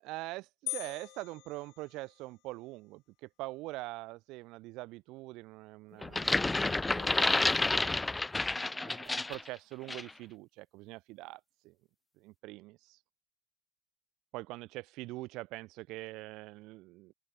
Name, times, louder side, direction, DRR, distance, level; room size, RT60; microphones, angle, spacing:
voice 1, 0.0-7.8 8.7-11.7 12.2-13.0 14.3-17.1, right 20 dB, 60° right, 3.1 m, -44 dB
sound 1, 0.7-2.4, left 20 dB, 60° left, 1.3 m, -42 dB
sound 2, 6.0-9.5 9.9-10.1, left 2 dB, 15° left, 0.3 m, -30 dB
open air
hypercardioid pair, 65°, 0 cm